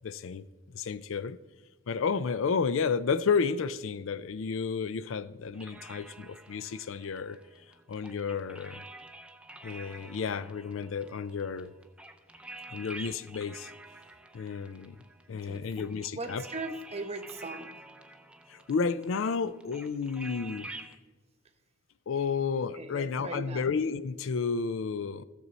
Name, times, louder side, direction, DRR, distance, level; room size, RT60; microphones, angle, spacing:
voice 1, 0.0-0.4 0.7-1.4 1.9-7.4 7.9-8.8 9.6-11.7 12.7-13.7 14.3-15.0 15.3-16.4 18.5-20.9 22.1-25.2, left 5 dB, 70° left, 16 dB, 0.4 m, -31 dB
sound 1, 5.5-21.0, right 2 dB, 5° right, 0.5 m, -49 dB
voice 2, 16.1-17.7 22.7-23.7, right 2 dB, 30° right, 6 dB, 0.9 m, -39 dB
15.0 x 6.7 x 4.1 m, 1.2 s
head